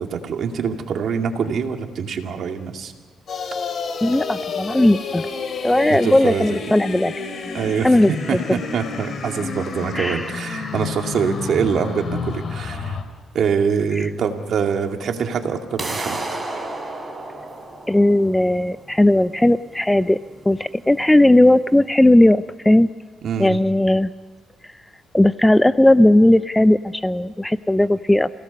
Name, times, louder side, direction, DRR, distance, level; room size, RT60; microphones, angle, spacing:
voice 1, 0.0-2.9 5.9-6.5 7.5-13.0 13.3-16.2 23.2-23.6, right 6 dB, 65° right, 4 dB, 2.3 m, -24 dB
sound 1, 3.3-13.0, left 5 dB, 50° left, 2.7 m, -30 dB
voice 2, 4.0-5.3 5.6-7.1 7.8-8.6 9.9-10.3 10.6-10.7 14.0-14.1 17.9-20.2 20.4-22.9 23.4-24.1 25.1-28.3, left 1 dB, 10° left, 15 dB, 0.5 m, -16 dB
sound 2, 15.8-21.8, right 2 dB, 15° right, 4.0 m, -33 dB
29.0 x 17.5 x 5.4 m, 1.5 s
cardioid pair, 90°, 0 cm